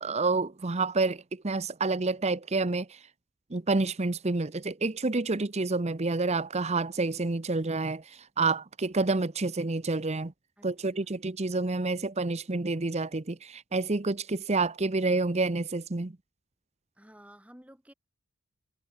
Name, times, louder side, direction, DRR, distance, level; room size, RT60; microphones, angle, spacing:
voice 1, 0.0-3.0 3.5-10.3 10.6-16.1, right 3 dB, 30° right, 0.7 m, -28 dB
voice 2, 10.6-11.2 16.9-17.9, equal, 5° right, 6.8 m, -54 dB
head